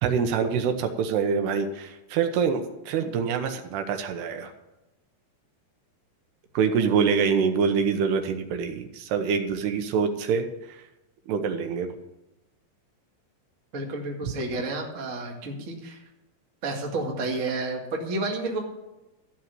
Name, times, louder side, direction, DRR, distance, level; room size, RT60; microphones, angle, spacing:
voice 1, 0.0-4.5 6.5-10.8 11.3-11.9, right 6 dB, 80° right, 6 dB, 3.0 m, -25 dB
voice 2, 13.7-16.0 16.6-18.6, right 2 dB, 40° right, 0 dB, 1.1 m, -30 dB
13.5 x 5.9 x 9.4 m, 0.98 s
omnidirectional pair, 4.9 m